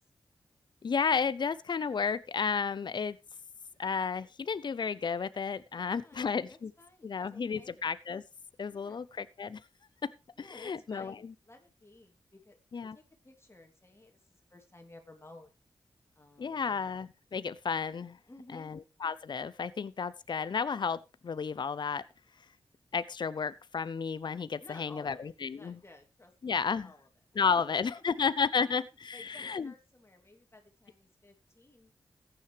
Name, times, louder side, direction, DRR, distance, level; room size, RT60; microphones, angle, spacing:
voice 1, 0.8-3.2 3.8-6.7 7.0-8.2 8.6-9.6 10.0-10.1 10.4-11.3 12.7-13.0 16.4-18.2 18.5-22.0 22.9-25.8 26.4-26.9 27.4-29.7, left 6 dB, 60° left, 16 dB, 0.7 m, -32 dB
voice 2, 5.8-7.8 8.7-9.1 10.3-15.5 16.1-16.8 18.3-18.7 24.6-28.0 29.1-31.9, left 2 dB, 30° left, 3 dB, 3.0 m, -56 dB
15.0 x 9.7 x 3.3 m, 0.27 s
cardioid pair, 45°, 9 cm